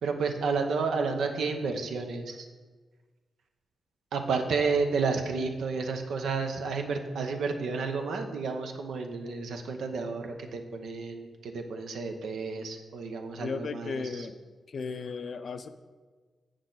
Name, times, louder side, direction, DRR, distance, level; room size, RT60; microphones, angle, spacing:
voice 1, 0.0-2.5 4.1-14.3, right 4 dB, 85° right, 5 dB, 0.7 m, -31 dB
voice 2, 13.4-14.4 14.7-15.7, left 4 dB, 60° left, 11 dB, 0.4 m, -35 dB
7.6 x 6.4 x 3.9 m, 1.4 s
cardioid pair, 70°, 0 cm